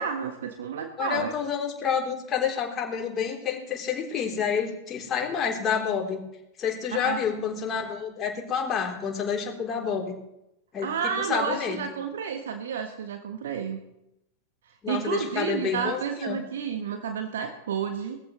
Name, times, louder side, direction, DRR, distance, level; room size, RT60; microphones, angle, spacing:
voice 1, 0.0-1.4 7.0-7.2 10.8-13.8 14.9-18.2, right 7 dB, 60° right, 6 dB, 1.3 m, -31 dB
voice 2, 1.0-6.2 6.6-10.2 10.7-10.9 11.3-11.8 14.8-16.4, left 7 dB, 25° left, -1 dB, 3.5 m, -29 dB
20.5 x 15.0 x 3.2 m, 0.87 s
figure-of-eight pair, 90°, 0 cm